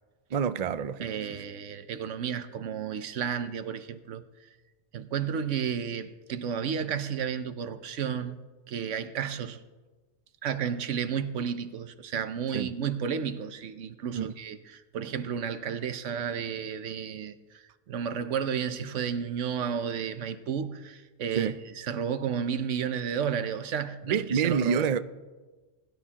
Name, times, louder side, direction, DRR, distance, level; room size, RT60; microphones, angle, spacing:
voice 1, 0.3-1.1 12.5-12.7 14.1-14.3 21.3-21.6 24.0-25.0, right 7 dB, 55° right, 0.4 m, -27 dB
voice 2, 1.0-4.2 4.9-9.6 10.4-24.9, right 7 dB, 75° right, 1.1 m, -32 dB
21.0 x 12.0 x 2.9 m
omnidirectional pair, 1.3 m